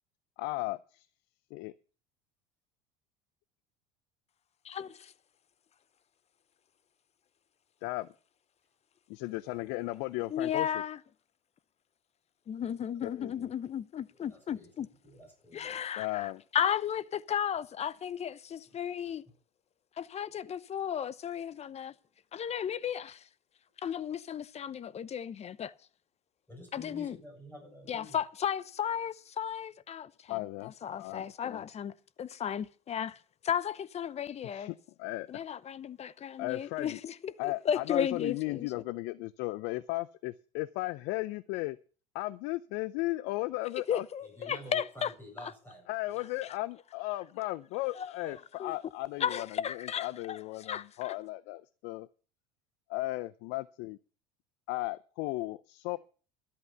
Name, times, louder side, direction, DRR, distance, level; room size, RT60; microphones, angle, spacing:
voice 1, 0.4-1.1 1.5-1.7 7.8-8.1 9.1-10.7 13.0-13.5 16.0-16.4 30.3-31.6 34.5-35.4 36.4-37.0 37.4-41.8 42.1-44.0 45.9-52.1 52.9-54.0 54.7-56.0, left 19 dB, 65° left, 0.5 m, -36 dB
voice 2, 4.6-5.1 10.3-11.0 12.5-14.9 15.5-19.2 20.0-21.9 22.3-23.3 23.8-25.7 26.7-27.2 27.9-34.7 35.3-38.7 43.7-45.1 45.4-45.5 46.4-46.5 47.9-48.2 48.6-48.8 49.2-51.1, left 8 dB, 35° left, 0.8 m, -35 dB
voice 3, 14.1-14.7 15.0-15.8 26.5-28.2 44.2-46.2 48.2-48.4, left 1 dB, 10° left, 7.0 m, -49 dB
13.0 x 8.5 x 5.7 m
hypercardioid pair, 85°, 19 cm